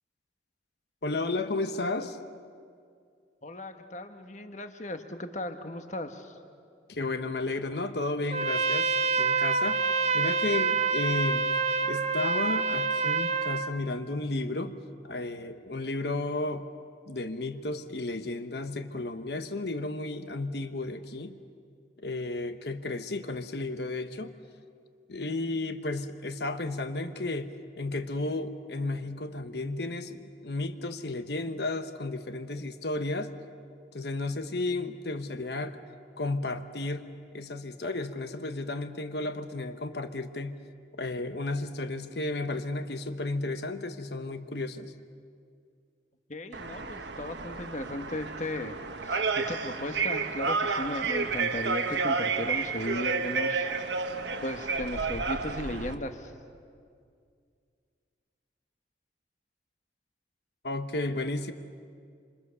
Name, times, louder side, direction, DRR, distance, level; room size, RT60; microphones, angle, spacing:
voice 1, 1.0-2.2 6.9-9.9 10.1-11.5 11.8-14.8 15.0-16.7 17.1-21.4 22.0-24.3 25.1-27.5 27.8-33.3 33.9-35.8 36.2-37.0 37.3-40.6 41.0-44.9 60.6-61.5, left 2 dB, 65° left, 8 dB, 1.1 m, -33 dB
voice 2, 3.4-6.4 46.3-48.8 49.0-53.7 54.4-56.3, left 1 dB, 40° left, 7 dB, 1.3 m, -36 dB
Trumpet, 8.3-13.7, right 4 dB, 35° right, 0.7 m, -27 dB
sound 1, 46.5-55.9, right 4 dB, 75° right, 1.3 m, -31 dB
27.0 x 26.5 x 6.9 m, 2.3 s
head